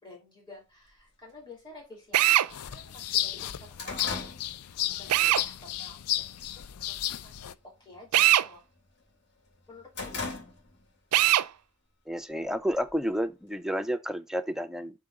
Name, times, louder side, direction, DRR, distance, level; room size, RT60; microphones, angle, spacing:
voice 1, 0.0-4.2 4.6-7.0 7.2-8.6 9.7-10.4, left 2 dB, 20° left, 3.0 m, -51 dB
sound 1, 0.9-1.0 1.9-2.0 2.5-2.6 2.9-5.3 5.7-6.0 6.4-6.9 7.2-7.5 7.8-9.1 9.5-10.9 11.3-11.4 12.3-13.2, left 3 dB, 50° left, 3.1 m, -39 dB
Drill, 2.1-2.5 5.1-5.5 8.1-8.5 11.1-11.5, right 14 dB, 90° right, 0.4 m, -21 dB
sound 2, 2.5-7.5, left 13 dB, 85° left, 0.5 m, -33 dB
voice 2, 12.1-15.0, equal, ahead, 0.5 m, -30 dB
7.8 x 3.8 x 4.8 m
head